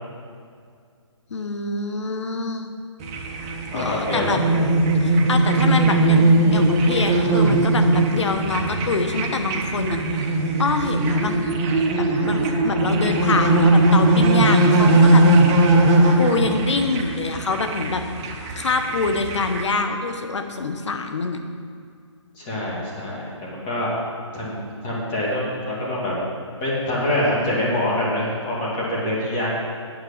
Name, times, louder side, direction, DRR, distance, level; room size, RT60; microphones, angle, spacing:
voice 1, 1.3-2.7 3.7-4.4 5.0-10.3 10.6-11.4 11.7-15.2 16.2-18.0 18.6-21.4, left 3 dB, 65° left, 6 dB, 1.1 m, -25 dB
sound 1, 3.0-19.6, right 2 dB, 10° right, 0.3 m, -19 dB
voice 2, 3.7-4.6 22.4-23.9 24.3-26.1 26.6-29.6, left 1 dB, 20° left, -6 dB, 2.3 m, -25 dB
9.1 x 6.2 x 7.1 m, 2.2 s
hypercardioid pair, 160°, 16 cm